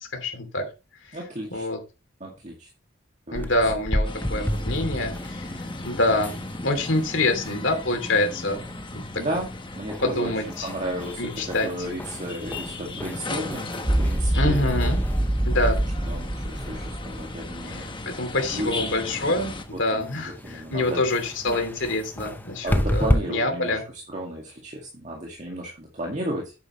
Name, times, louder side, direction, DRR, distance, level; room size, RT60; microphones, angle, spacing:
voice 1, 0.1-0.6 1.1-1.2 1.5-1.8 3.3-5.5 5.8-6.4 6.6-8.6 8.9-9.2 10.0-10.7 11.2-11.7 14.3-15.0 15.4-15.8 17.6-17.9 18.1-23.8, left 2 dB, 70° left, 5 dB, 2.8 m, -26 dB
voice 2, 1.1-1.6 2.2-2.7 3.3-3.5 9.2-14.6 16.1-17.9 18.5-18.9 19.7-21.0 22.6-23.8 24.1-26.5, right 1 dB, 35° right, -1 dB, 2.1 m, -33 dB
sound 1, 3.3-23.2, equal, 10° left, 0.7 m, -33 dB
sound 2, 4.0-19.6, left 2 dB, 25° left, 1.1 m, -37 dB
sound 3, 13.8-17.8, right 1 dB, 10° right, 0.3 m, -25 dB
9.3 x 8.9 x 3.1 m, 0.29 s
head